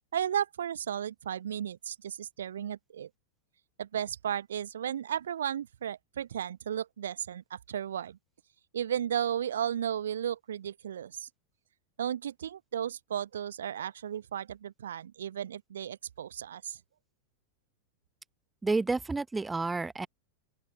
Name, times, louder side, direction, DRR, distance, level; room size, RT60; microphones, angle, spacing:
voice 1, 0.1-3.1 3.8-8.2 8.7-11.3 12.0-16.8, right 9 dB, 65° right, 0.8 m, -34 dB
voice 2, 18.6-20.1, right 3 dB, 10° right, 0.9 m, -30 dB
open air
figure-of-eight pair, 90°, 0 cm